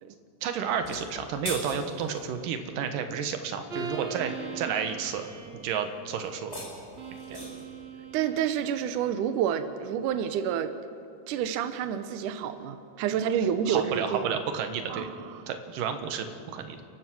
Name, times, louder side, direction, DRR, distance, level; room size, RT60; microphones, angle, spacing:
voice 1, 0.4-5.3 5.5-6.6 7.3-7.4 13.7-15.1 15.5-16.8, right 7 dB, 65° right, 7 dB, 2.5 m, -31 dB
sound 1, 0.7-2.3 6.2-7.7, left 1 dB, 15° left, 4.4 m, -40 dB
sound 2, 3.7-5.6 7.0-8.8, right 5 dB, 50° right, 2.6 m, -39 dB
voice 2, 8.1-10.7 11.3-14.4 14.9-15.4, right 9 dB, 80° right, 9 dB, 1.8 m, -29 dB
30.0 x 14.5 x 6.1 m, 2.4 s
omnidirectional pair, 4.7 m